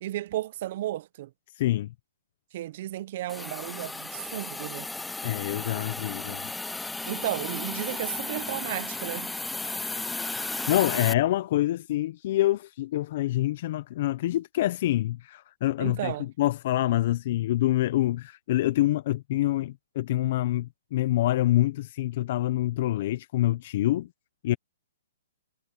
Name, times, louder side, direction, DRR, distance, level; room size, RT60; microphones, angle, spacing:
voice 1, 0.0-1.3 2.5-4.9 7.0-9.3 15.8-16.3, right 14 dB, 50° right, 0.8 m, -33 dB
voice 2, 1.5-1.9 5.2-6.5 10.7-16.1 16.4-24.1 24.4-24.6, left 15 dB, 50° left, 0.8 m, -26 dB
Hiss, 3.3-11.1, left 3 dB, 5° left, 0.8 m, -34 dB
hypercardioid pair, 140°, 0 cm